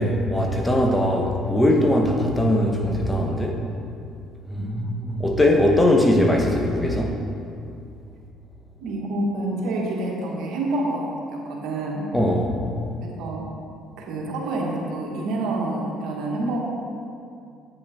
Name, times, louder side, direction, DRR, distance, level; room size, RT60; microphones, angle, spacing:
voice 1, 0.0-3.7 4.5-7.2 12.1-12.6, left 1 dB, 15° left, 1 dB, 1.4 m, -20 dB
voice 2, 8.8-12.1 13.2-13.4 14.0-16.6, right 2 dB, 70° right, -2 dB, 1.9 m, -27 dB
9.1 x 7.6 x 4.6 m, 2.5 s
supercardioid pair, 70°, 0 cm